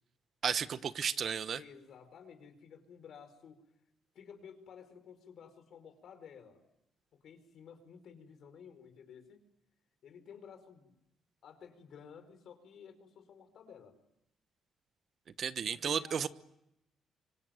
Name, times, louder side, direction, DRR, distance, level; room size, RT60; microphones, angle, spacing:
voice 1, 0.4-1.6 15.4-16.3, right 7 dB, 55° right, 14 dB, 1.1 m, -33 dB
voice 2, 1.5-3.6 4.1-6.6 7.1-9.4 10.0-10.9 11.4-14.0 15.6-16.3, left 7 dB, 65° left, 9 dB, 4.8 m, -53 dB
25.0 x 24.5 x 9.2 m, 0.86 s
cardioid pair, 90°, 0 cm